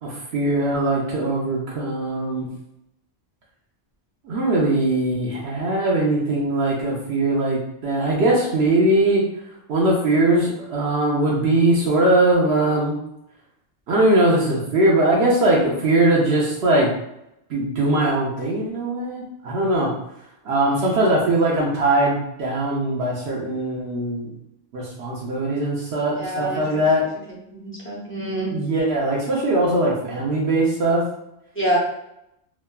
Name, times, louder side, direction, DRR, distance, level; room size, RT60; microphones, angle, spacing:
voice 1, 0.0-2.5 4.2-9.2 9.7-12.9 13.9-16.9 17.5-19.9 20.4-24.3 24.7-27.0 28.5-31.0, right 2 dB, 70° right, -4 dB, 0.9 m, -20 dB
voice 2, 26.2-26.6 27.5-28.5 31.6-31.8, right 1 dB, 15° left, -5 dB, 0.6 m, -26 dB
2.9 x 2.2 x 2.2 m, 0.82 s
omnidirectional pair, 1.1 m